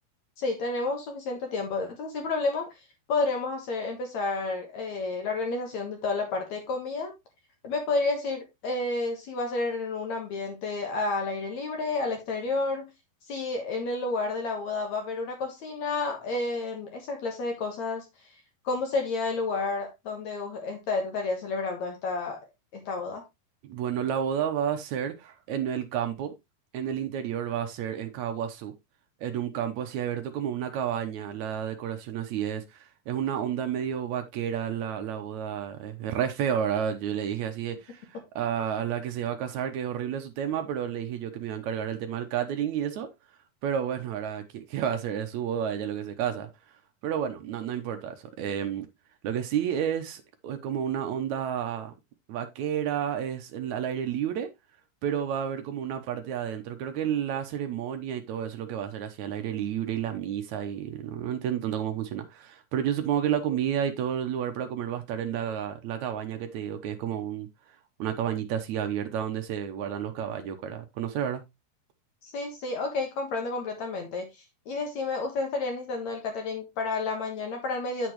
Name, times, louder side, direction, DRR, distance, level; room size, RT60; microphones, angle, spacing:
voice 1, 0.4-2.7 3.1-7.1 7.6-12.9 13.3-18.1 18.6-22.4 22.7-23.2 72.2-74.3 74.7-78.1, left 3 dB, 60° left, 2.2 m, -30 dB
voice 2, 23.6-26.4 26.7-28.7 29.2-38.1 38.4-43.1 43.6-46.5 47.0-48.9 49.2-51.9 52.3-54.5 55.0-67.5 68.0-71.4, right 9 dB, 75° right, 1.7 m, -31 dB
8.3 x 7.0 x 3.0 m
omnidirectional pair, 4.5 m